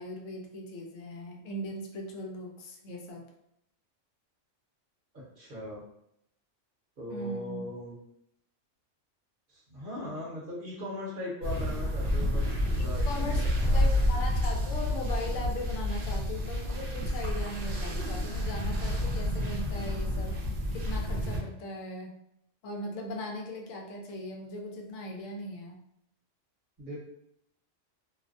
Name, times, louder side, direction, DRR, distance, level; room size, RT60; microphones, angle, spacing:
voice 1, 0.0-3.2 7.1-7.6 13.1-20.4 20.7-22.1 22.6-25.8, left 1 dB, 85° left, 1 dB, 0.9 m, -39 dB
voice 2, 5.1-5.8 7.0-8.0 9.5-12.4 12.8-13.8 26.8-27.0, left 1 dB, 50° right, -5 dB, 0.9 m, -39 dB
sound 1, 11.4-21.4, left 1 dB, 90° right, 0.3 m, -29 dB
2.5 x 2.1 x 2.5 m, 0.76 s
omnidirectional pair, 1.3 m